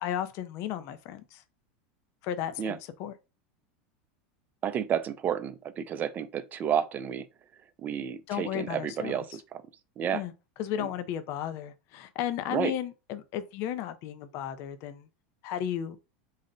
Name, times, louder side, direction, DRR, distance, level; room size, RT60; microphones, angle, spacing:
voice 1, 0.0-1.4 2.2-3.1 8.3-9.2 10.1-10.3 10.6-15.1 15.4-16.0, left 10 dB, 50° left, 0.5 m, -34 dB
voice 2, 4.6-7.3 7.8-9.6 10.0-10.2 10.8-10.9 12.5-12.7, right 8 dB, 30° right, 0.4 m, -31 dB
3.9 x 2.1 x 3.8 m
supercardioid pair, 125°, 6 cm